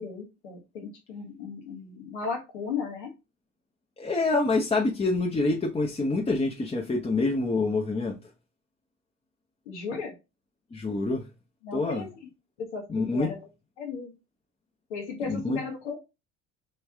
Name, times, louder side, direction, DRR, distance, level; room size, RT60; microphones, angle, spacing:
voice 1, 0.0-3.1 9.6-10.1 11.6-12.3 12.6-13.4 13.8-14.1 14.9-16.0, left 5 dB, 90° left, 1.3 m, -35 dB
voice 2, 4.0-8.1 10.7-11.2 11.7-12.0 12.9-13.3 15.3-15.6, left 3 dB, 15° left, 0.7 m, -26 dB
3.2 x 3.0 x 3.4 m
hypercardioid pair, 70°, 34 cm